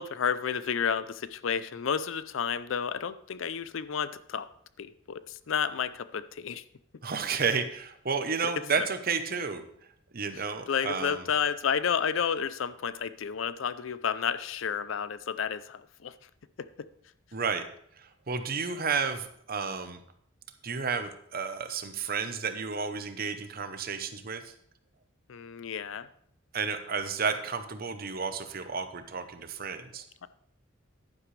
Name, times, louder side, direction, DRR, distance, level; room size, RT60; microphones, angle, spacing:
voice 1, 0.0-4.5 4.8-6.6 8.4-8.5 10.7-16.1 16.6-16.9 25.3-26.1 30.2-30.3, left 7 dB, 65° left, 14 dB, 0.5 m, -31 dB
voice 2, 7.0-9.6 10.1-11.2 17.3-17.6 18.0-20.0 20.6-24.5 26.5-30.0, right 5 dB, 45° right, 9 dB, 0.9 m, -32 dB
11.0 x 10.0 x 3.3 m, 0.69 s
head